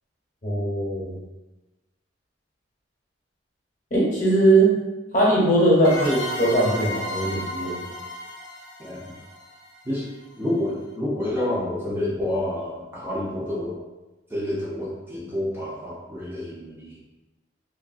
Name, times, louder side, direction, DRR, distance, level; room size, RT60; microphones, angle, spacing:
voice 1, 0.4-1.2 3.9-4.7 5.1-7.8, right 1 dB, 40° left, -5 dB, 0.8 m, -20 dB
sound 1, 5.8-10.4, equal, 80° left, 0.6 m, -34 dB
voice 2, 10.4-13.8 14.3-17.0, left 1 dB, 10° right, -7 dB, 0.4 m, -28 dB
3.0 x 2.3 x 2.4 m, 1.1 s
head